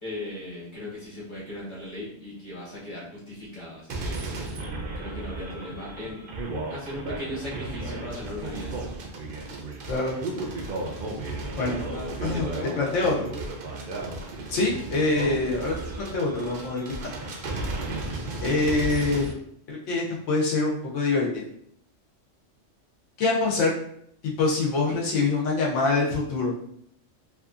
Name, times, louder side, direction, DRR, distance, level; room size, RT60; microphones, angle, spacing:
voice 1, 0.0-4.2 4.9-6.2 6.7-8.7 11.7-13.0 15.5-15.6, left 1 dB, 25° left, -7 dB, 1.1 m, -37 dB
sound 1, 3.9-19.3, right 2 dB, 60° right, 0.6 m, -34 dB
voice 2, 12.8-13.3 14.5-17.1 18.4-19.3 19.7-21.4 23.2-23.7 24.2-26.5, left 3 dB, 75° left, -2 dB, 1.1 m, -25 dB
2.8 x 2.4 x 2.4 m, 0.69 s
omnidirectional pair, 1.3 m